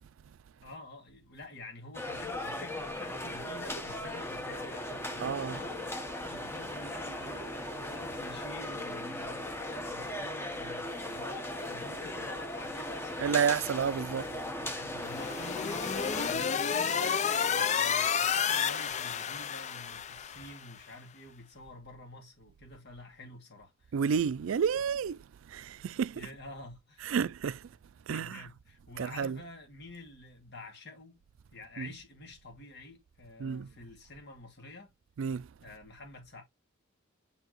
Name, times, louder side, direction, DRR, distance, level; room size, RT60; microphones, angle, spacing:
voice 1, 0.6-13.4 14.1-15.4 15.7-23.9 26.1-27.2 28.1-31.2 31.5-34.9 35.6-36.4, left 2 dB, 60° left, 2.4 m, -49 dB
sound 1, 1.9-16.3, left 1 dB, 10° left, 1.1 m, -38 dB
voice 2, 5.2-5.6 13.2-14.2 23.9-26.2 27.0-27.7 28.1-28.5 29.0-29.4 31.8-31.9 33.4-33.7 35.2-35.5, right 7 dB, 80° right, 0.4 m, -31 dB
sound 2, 15.0-20.6, left 7 dB, 35° left, 0.4 m, -30 dB
6.7 x 4.6 x 3.0 m
head